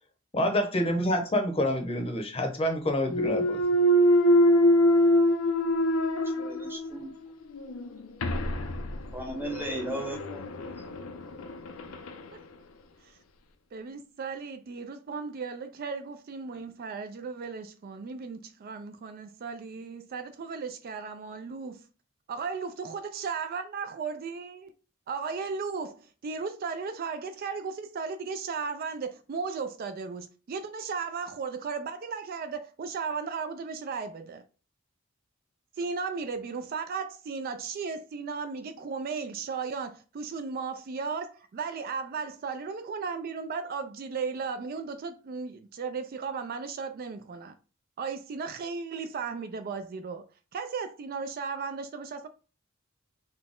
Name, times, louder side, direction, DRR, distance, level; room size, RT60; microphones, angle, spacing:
voice 1, 0.3-3.6, left 1 dB, 30° left, 0.7 m, -27 dB
Thump thud, 3.0-7.1 7.5-12.2, equal, 85° left, 0.5 m, -25 dB
voice 2, 6.3-7.1 9.1-10.5, right 1 dB, 10° right, 0.9 m, -36 dB
voice 3, 13.7-21.9 22.3-24.7 25.1-34.4 35.8-47.5 48.0-50.3 50.5-52.3, right 5 dB, 45° right, 0.3 m, -35 dB
4.0 x 2.1 x 3.6 m
head